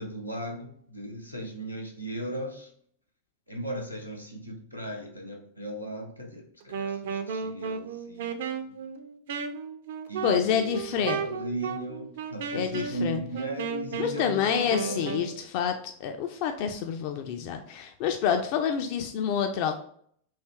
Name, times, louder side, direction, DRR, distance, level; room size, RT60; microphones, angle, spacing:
voice 1, 0.0-2.7 3.5-8.5 10.1-14.4 14.8-15.8, right 1 dB, 90° left, 0 dB, 0.8 m, -37 dB
Wind instrument woodwind instrument, 6.6-15.3, right 6 dB, 55° right, 0.4 m, -34 dB
voice 2, 10.2-11.2 12.5-13.2 14.0-19.8, left 8 dB, 45° left, 6 dB, 0.3 m, -28 dB
3.2 x 2.9 x 4.2 m, 0.62 s
figure-of-eight pair, 90°, 0 cm